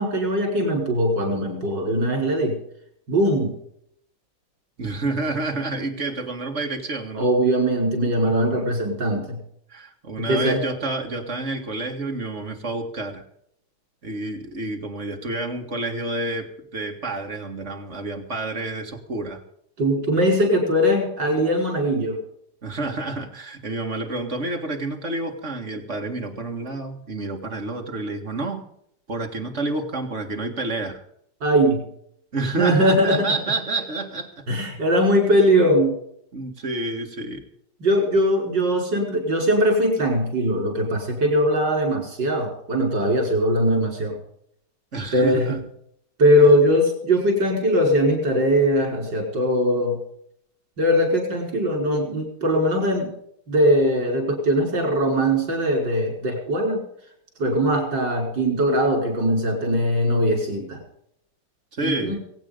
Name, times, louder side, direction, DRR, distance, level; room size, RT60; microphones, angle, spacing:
voice 1, 0.0-2.6 3.1-3.6 7.1-9.4 10.2-10.6 19.8-22.2 31.4-31.9 32.6-33.3 34.5-36.0 37.8-44.2 45.1-45.6 46.2-50.0 50.8-53.1 53.5-56.8 57.4-60.8 61.8-62.2, equal, 85° right, 2 dB, 5.6 m, -20 dB
voice 2, 4.8-7.3 8.4-8.7 9.7-13.2 14.0-19.4 22.6-28.7 29.1-31.0 32.3-34.4 36.3-37.4 44.9-45.6 46.4-46.6 61.7-62.2, right 2 dB, 40° right, 3 dB, 2.2 m, -29 dB
23.5 x 8.8 x 5.2 m, 0.70 s
omnidirectional pair, 1.9 m